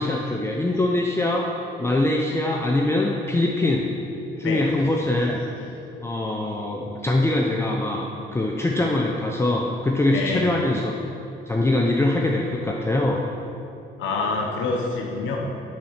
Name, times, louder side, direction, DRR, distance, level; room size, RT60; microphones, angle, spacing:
voice 1, 0.0-1.5 1.8-3.9 4.4-5.4 6.0-10.9 11.5-13.2, left 2 dB, 15° left, -1 dB, 0.6 m, -23 dB
voice 2, 1.3-1.9 4.1-4.8 5.7-6.0 10.1-10.5 11.0-11.1 14.0-15.4, left 3 dB, 80° left, 0 dB, 1.0 m, -28 dB
7.5 x 4.4 x 5.6 m, 2.6 s
cardioid pair, 90°, 20 cm